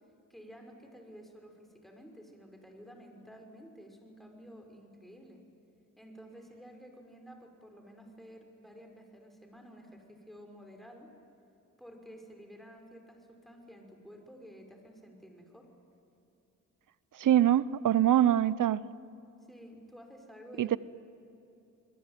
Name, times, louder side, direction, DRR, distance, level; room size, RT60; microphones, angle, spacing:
voice 1, 0.3-5.4 6.0-11.1 11.8-15.7 19.5-20.8, equal, ahead, 3 dB, 6.0 m, -52 dB
voice 2, 17.2-18.8 20.6-20.8, right 11 dB, 80° right, 18 dB, 0.8 m, -24 dB
29.0 x 21.5 x 9.2 m, 2.9 s
cardioid pair, 70°, 32 cm